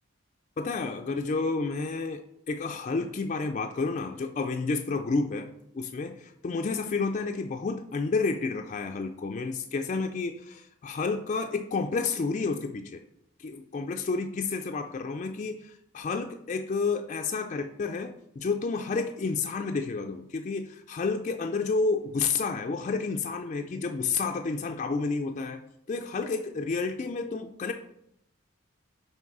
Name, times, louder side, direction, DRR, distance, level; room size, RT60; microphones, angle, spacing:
voice 1, 0.6-13.0 13.4-25.6 25.9-27.7, left 4 dB, 35° left, 5 dB, 0.3 m, -30 dB
7.0 x 3.3 x 4.7 m, 0.75 s
head